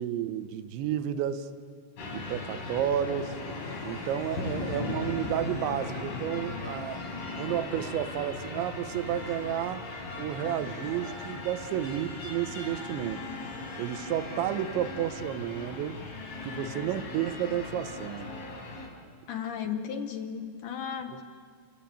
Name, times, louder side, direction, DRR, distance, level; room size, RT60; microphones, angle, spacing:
voice 1, 0.0-1.5 2.0-3.4 3.8-7.1 7.4-9.8 10.2-13.2 13.8-16.0 16.4-18.3 21.1-21.2, right 10 dB, 85° right, 10 dB, 3.3 m, -31 dB
sound 1, 2.0-18.9, left 3 dB, 55° left, 6.1 m, -38 dB
voice 2, 19.3-21.2, left 7 dB, 75° left, 6 dB, 1.9 m, -35 dB
30.0 x 22.5 x 8.7 m, 2.1 s
omnidirectional pair, 5.1 m